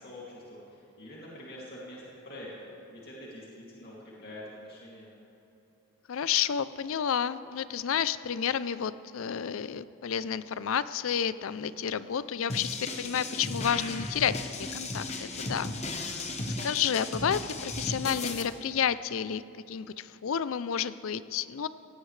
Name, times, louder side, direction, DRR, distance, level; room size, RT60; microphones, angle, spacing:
voice 1, 0.0-5.1, left 1 dB, 45° left, -6 dB, 2.5 m, -45 dB
voice 2, 6.1-14.4 14.7-15.7 16.6-19.4 19.7-21.7, left 8 dB, 65° left, 15 dB, 0.4 m, -30 dB
sound 1, 12.5-18.4, left 2 dB, 30° left, 1.0 m, -35 dB
18.0 x 15.5 x 3.3 m, 3.0 s
head